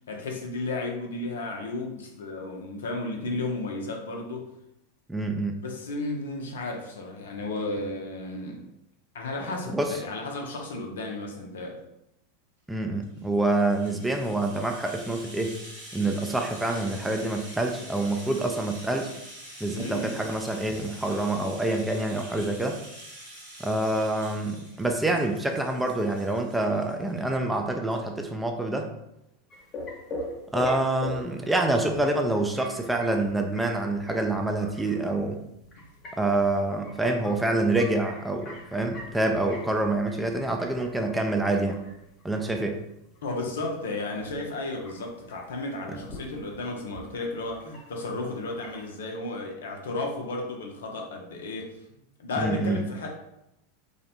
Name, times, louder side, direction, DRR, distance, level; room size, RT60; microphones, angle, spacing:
voice 1, 0.1-4.5 5.6-8.7 9.1-11.8 19.7-20.2 43.2-53.1, left 2 dB, 75° left, 1 dB, 0.5 m, -33 dB
voice 2, 5.1-5.5 9.7-10.0 12.7-15.6 15.9-19.1 19.6-22.8 23.6-28.9 30.5-35.4 36.2-41.8 42.2-42.8 52.4-52.8, right 2 dB, 10° right, 3 dB, 0.3 m, -26 dB
Rattle (instrument), 13.1-27.2 27.5-27.6 27.9-28.0, right 1 dB, 90° right, 1.1 m, -46 dB
sound 1, 29.5-48.9, left 2 dB, 35° left, 0.8 m, -43 dB
2.6 x 2.1 x 2.7 m, 0.84 s
hypercardioid pair, 90°, 0 cm